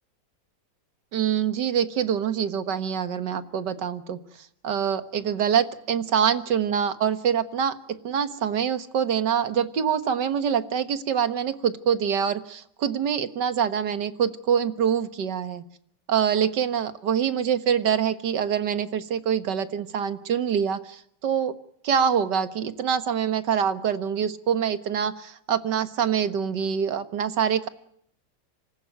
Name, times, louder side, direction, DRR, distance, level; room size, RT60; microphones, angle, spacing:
voice 1, 1.1-4.2 4.6-7.7 8.0-15.6 16.1-21.5 21.8-27.7, right 8 dB, 65° right, 11 dB, 2.0 m, -25 dB
26.5 x 15.0 x 9.2 m, 0.70 s
omnidirectional pair, 2.0 m